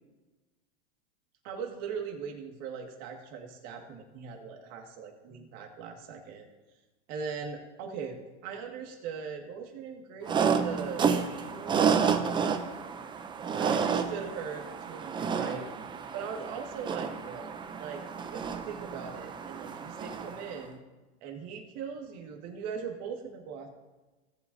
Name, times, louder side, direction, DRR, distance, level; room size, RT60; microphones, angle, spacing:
voice 1, 1.4-6.5 7.1-12.0 13.6-15.7 16.1-18.0 18.3-20.8 21.2-23.7, right 6 dB, 45° right, 2 dB, 1.9 m, -40 dB
sound 1, 10.3-20.6, right 6 dB, 15° right, 0.5 m, -30 dB
17.5 x 8.0 x 2.7 m, 1.2 s
supercardioid pair, 125°, 34 cm